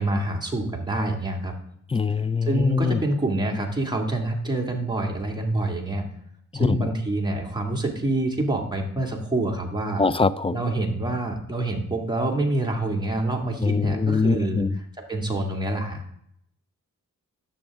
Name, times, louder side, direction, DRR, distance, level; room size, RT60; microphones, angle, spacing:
voice 1, 0.0-1.5 2.4-6.1 6.5-10.0 10.5-14.6 15.1-16.0, right 2 dB, 10° right, 1 dB, 2.1 m, -26 dB
voice 2, 1.9-3.0 6.5-6.9 10.0-10.6 13.6-14.8, left 4 dB, 15° left, 16 dB, 0.3 m, -23 dB
10.0 x 7.2 x 3.5 m, 0.71 s
cardioid pair, 65°, 35 cm